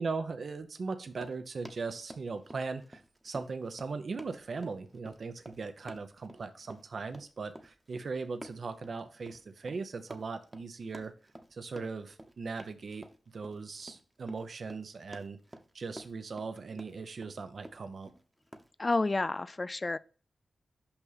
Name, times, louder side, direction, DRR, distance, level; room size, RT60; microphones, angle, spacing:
voice 1, 0.0-11.1 11.5-13.1 13.3-15.4 15.7-18.1, right 4 dB, 65° right, 0.7 m, -39 dB
Run, 1.0-18.7, right 1 dB, 20° right, 0.9 m, -51 dB
voice 2, 18.8-20.0, left 3 dB, 35° left, 0.3 m, -30 dB
5.7 x 5.4 x 4.1 m
cardioid pair, 55°, 0 cm